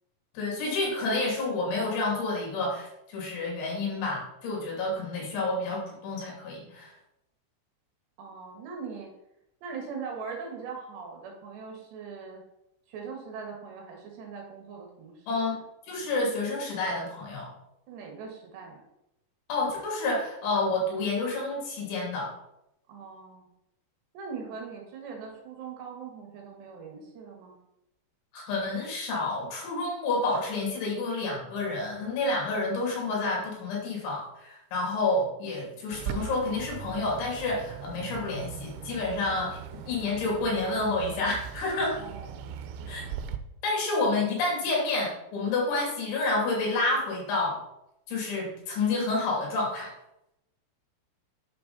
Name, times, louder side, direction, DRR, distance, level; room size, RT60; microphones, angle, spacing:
voice 1, 0.3-6.9 15.3-15.6 15.9-17.5 19.5-22.3 28.3-42.0 42.9-43.1 43.6-47.6 48.1-49.9, left 2 dB, 75° left, -2 dB, 4.9 m, -29 dB
voice 2, 8.2-9.1 9.6-12.4 12.9-15.5 17.9-18.8 22.9-23.5 24.1-27.6 42.0-43.2, right 5 dB, 70° right, 1 dB, 3.5 m, -41 dB
Bird, 35.9-43.4, right 9 dB, 90° right, 3.1 m, -40 dB
8.9 x 6.7 x 4.0 m, 0.84 s
omnidirectional pair, 5.4 m